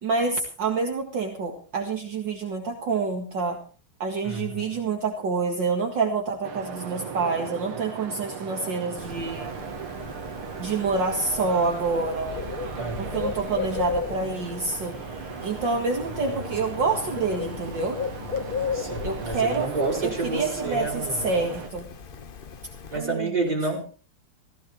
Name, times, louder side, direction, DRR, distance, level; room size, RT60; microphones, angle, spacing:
voice 1, 0.0-3.6 4.0-9.6 10.6-12.4 13.0-15.0 15.4-18.0 19.0-19.7 20.0-21.9 22.9-23.5, right 4 dB, 55° right, 2 dB, 2.5 m, -27 dB
voice 2, 4.2-4.8 12.8-13.3 16.3-16.4 18.7-21.3 22.9-23.8, right 2 dB, 20° right, -1 dB, 4.7 m, -30 dB
sound 1, 6.4-21.7, right 7 dB, 75° right, 2.5 m, -37 dB
Bird, 9.0-23.0, left 6 dB, 75° left, 0.5 m, -36 dB
15.5 x 15.0 x 4.5 m, 0.38 s
omnidirectional pair, 2.4 m